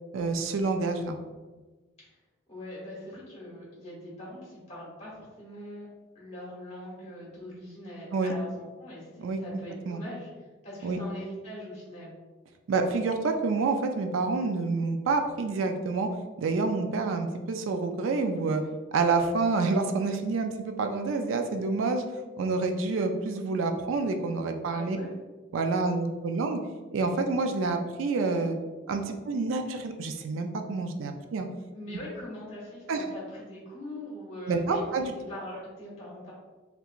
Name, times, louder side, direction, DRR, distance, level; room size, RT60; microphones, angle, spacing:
voice 1, 0.1-1.2 8.1-8.3 9.2-9.4 9.9-10.0 10.8-11.0 12.7-16.1 16.4-18.6 18.9-22.0 22.4-25.0 25.5-26.6 26.9-28.6 28.9-31.5 32.9-33.0 34.5-35.1, right 3 dB, 90° right, 6 dB, 0.4 m, -28 dB
voice 2, 2.5-5.9 6.1-10.3 10.6-12.1 24.7-25.1 31.7-36.3, left 1 dB, 35° left, -7 dB, 1.3 m, -42 dB
3.4 x 2.9 x 2.4 m, 1.3 s
head